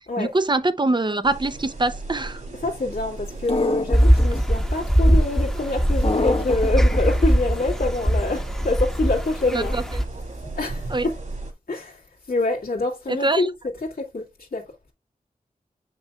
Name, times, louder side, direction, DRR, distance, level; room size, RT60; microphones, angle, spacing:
voice 1, 0.2-2.4 9.5-9.8 10.9-11.1 13.1-13.5, right 2 dB, 30° right, 0.6 m, -23 dB
sound 1, 1.2-11.5, right 2 dB, 55° right, 2.3 m, -36 dB
voice 2, 2.6-9.7 10.6-11.2 11.7-12.0 12.3-13.5 13.8-14.7, left 2 dB, 85° left, 2.2 m, -26 dB
sound 2, 3.5-4.4 6.0-7.0, left 3 dB, 40° left, 0.9 m, -26 dB
sound 3, 3.9-10.0, equal, 5° left, 1.0 m, -21 dB
7.1 x 5.9 x 2.3 m
wide cardioid pair, 75°, 15 cm